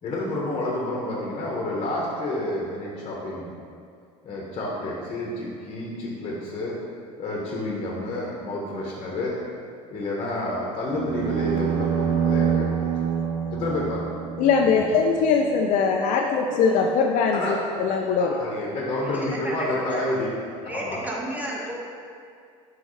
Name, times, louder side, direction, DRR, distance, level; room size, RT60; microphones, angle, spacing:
voice 1, 0.0-3.5 4.2-6.8 7.2-9.4 9.9-12.9 13.2-14.0 14.6-14.8 17.3-17.6 18.2-20.3 20.7-21.0, left 1 dB, 40° left, -3 dB, 1.2 m, -29 dB
sound 1, 10.9-15.2, right 8 dB, 50° right, 0.5 m, -26 dB
voice 2, 14.4-17.4 17.8-18.3, left 5 dB, 55° left, 1 dB, 0.5 m, -21 dB
voice 3, 16.1-16.6 18.3-18.5 19.1-20.0 20.6-21.7, equal, 10° right, -3 dB, 1.3 m, -34 dB
6.2 x 4.8 x 3.2 m, 2.3 s
supercardioid pair, 90°, 16 cm